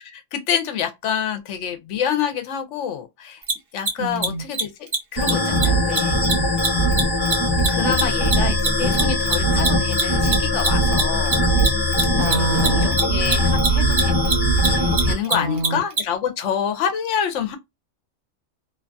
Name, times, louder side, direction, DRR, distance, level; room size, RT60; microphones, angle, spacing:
voice 1, 0.0-3.4 3.7-6.2 7.7-11.5 12.1-17.6, left 8 dB, 70° left, 0.8 m, -27 dB
Mechanisms, 3.4-3.5 3.8-3.9 4.2-4.3 4.5-4.6 4.9-5.0 5.2-5.3 5.6-5.7 6.0-8.7 8.9-16.0, right 3 dB, 40° right, 0.5 m, -22 dB
voice 2, 4.0-4.4 12.2-13.0 15.2-15.8, right 3 dB, 75° right, 1.1 m, -26 dB
sound 1, 5.1-15.1, equal, 20° left, 0.8 m, -20 dB
2.7 x 2.2 x 2.5 m
omnidirectional pair, 1.3 m